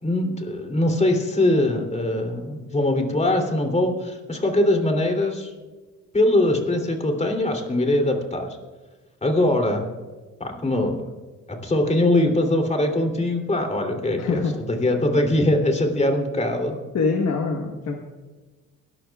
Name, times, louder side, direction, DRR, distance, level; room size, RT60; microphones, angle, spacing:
voice 1, 0.0-5.5 6.1-8.6 9.2-9.9 10.4-11.0 11.5-14.4 14.7-16.7, left 1 dB, 20° left, 4 dB, 3.1 m, -22 dB
voice 2, 14.2-14.6 16.9-18.0, left 4 dB, 55° left, 3 dB, 1.3 m, -24 dB
23.0 x 13.5 x 2.4 m, 1.3 s
cardioid pair, 90°, 30 cm